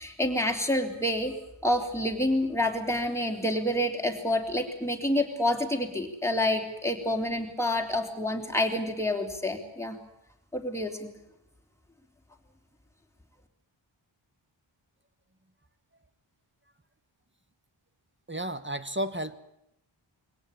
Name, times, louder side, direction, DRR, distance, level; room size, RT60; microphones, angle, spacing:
voice 1, 0.0-1.3 1.6-10.0 10.5-11.2, left 1 dB, 5° left, 2 dB, 3.6 m, -28 dB
voice 2, 18.3-19.4, right 1 dB, 25° right, 11 dB, 1.4 m, -32 dB
23.5 x 17.5 x 8.8 m, 0.80 s
wide cardioid pair, 65°, 49 cm